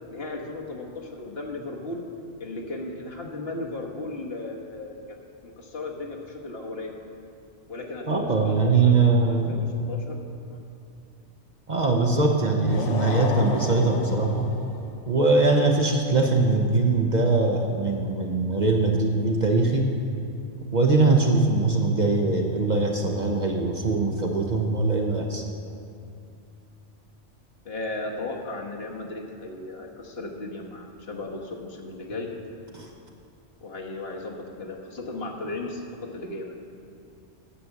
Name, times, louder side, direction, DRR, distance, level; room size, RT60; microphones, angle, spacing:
voice 1, 0.1-2.0 2.4-5.0 5.4-7.0 7.7-8.9 9.5-10.2 10.5-10.6 27.6-32.3 33.6-35.9 36.1-36.5, left 2 dB, 55° left, -1 dB, 1.5 m, -35 dB
voice 2, 8.1-9.7 11.7-14.5 15.1-19.9 20.7-25.4 32.7-32.9, right 3 dB, 40° right, 1 dB, 0.9 m, -22 dB
sound 1, 12.6-15.0, left 4 dB, 85° left, 1.2 m, -31 dB
10.0 x 7.7 x 7.0 m, 2.5 s
omnidirectional pair, 1.2 m